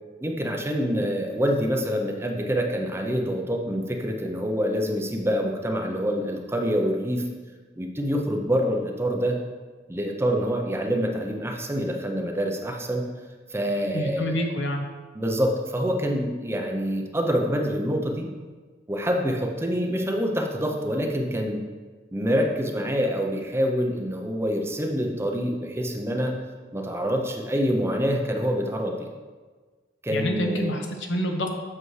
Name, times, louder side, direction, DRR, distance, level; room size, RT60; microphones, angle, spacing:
voice 1, 0.2-7.2 7.8-9.4 9.9-13.0 13.5-14.5 15.2-18.3 18.9-21.6 22.1-26.4 26.7-29.0 30.0-30.7, equal, 15° right, 2 dB, 0.6 m, -26 dB
voice 2, 13.9-14.8 30.1-31.5, equal, 70° left, 3 dB, 0.9 m, -27 dB
7.8 x 6.2 x 3.2 m, 1.4 s
head